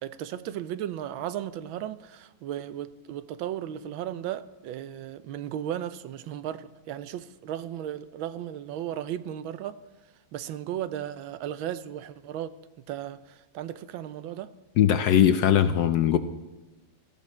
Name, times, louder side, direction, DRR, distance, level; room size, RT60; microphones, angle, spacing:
voice 1, 0.0-9.8 10.3-14.5, right 11 dB, 85° right, 1.5 m, -35 dB
voice 2, 14.8-16.2, left 10 dB, 70° left, 1.0 m, -20 dB
18.0 x 14.5 x 4.4 m
omnidirectional pair, 2.1 m